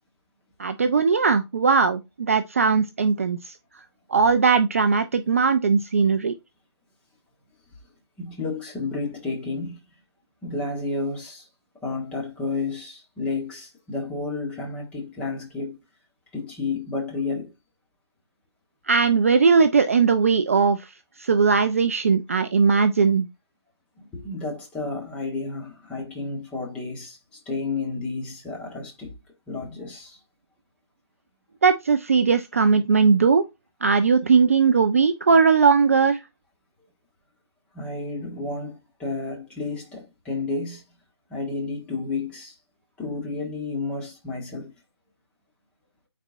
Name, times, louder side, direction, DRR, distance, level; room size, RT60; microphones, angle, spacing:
voice 1, 0.6-3.5 4.1-6.3 18.9-20.8 21.2-23.3 31.6-33.4 33.8-36.2, right 5 dB, 30° right, 0.4 m, -19 dB
voice 2, 8.2-9.8 10.4-11.5 11.8-15.8 16.3-17.5 24.1-29.1 29.5-30.2 37.7-40.8 41.3-42.6 43.0-44.7, left 3 dB, 5° left, 1.2 m, -31 dB
8.6 x 4.2 x 2.6 m
figure-of-eight pair, 145°, 14 cm